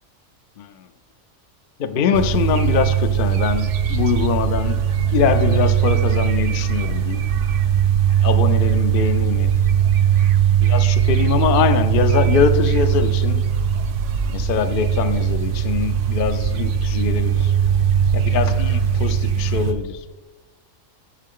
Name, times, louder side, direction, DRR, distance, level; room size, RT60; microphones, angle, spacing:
voice 1, 0.6-0.9 1.8-4.8 5.1-7.2 8.1-9.5 10.6-13.4 14.3-17.5 18.1-20.0, left 6 dB, 60° left, 9 dB, 0.5 m, -22 dB
sound 1, 2.1-19.7, right 8 dB, 70° right, 1.1 m, -19 dB
8.3 x 7.5 x 3.7 m, 1.2 s
omnidirectional pair, 1.4 m